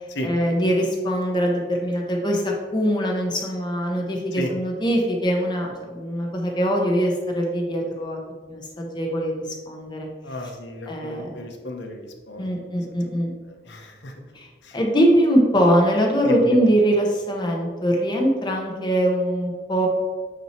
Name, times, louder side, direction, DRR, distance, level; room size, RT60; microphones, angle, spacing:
voice 1, 0.2-8.2 8.5-9.3 9.7-10.1 10.9-11.3 12.4-13.3 14.3-14.5 14.7-19.9, equal, 25° left, 0 dB, 1.0 m, -22 dB
voice 2, 10.2-12.8 13.1-14.1 14.6-14.8 16.2-16.7, equal, 70° left, 3 dB, 0.9 m, -35 dB
8.9 x 3.0 x 4.4 m, 1.4 s
head